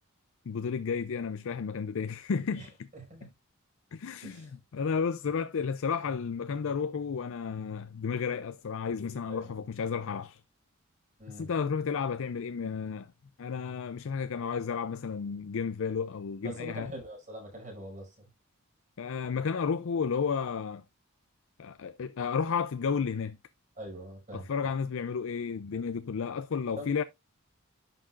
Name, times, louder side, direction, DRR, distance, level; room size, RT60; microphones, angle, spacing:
voice 1, 0.5-2.7 3.2-3.3 3.9-10.4 11.4-13.1 13.4-16.9 19.0-20.8 21.6-23.4 24.3-27.0, left 6 dB, 65° left, 0.4 m, -32 dB
voice 2, 2.9-3.3 4.2-4.5 9.3-9.6 11.2-11.5 16.4-18.3 23.8-24.5 26.8-27.0, right 1 dB, 35° right, 5.8 m, -43 dB
11.0 x 5.9 x 2.5 m
head